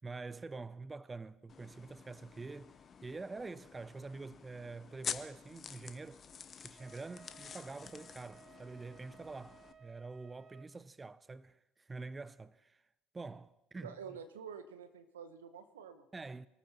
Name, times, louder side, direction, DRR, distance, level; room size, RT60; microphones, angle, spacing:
voice 1, 0.0-2.7 3.0-6.2 6.6-12.8 13.1-14.2 16.1-16.5, right 3 dB, 20° right, 0.4 m, -46 dB
sound 1, 1.5-9.7, left 6 dB, 35° left, 1.0 m, -48 dB
Wind instrument woodwind instrument, 6.7-10.7, right 7 dB, 40° right, 1.3 m, -60 dB
voice 2, 13.8-16.0, right 7 dB, 85° right, 1.0 m, -48 dB
26.0 x 14.0 x 3.0 m
hypercardioid pair, 70°, 0 cm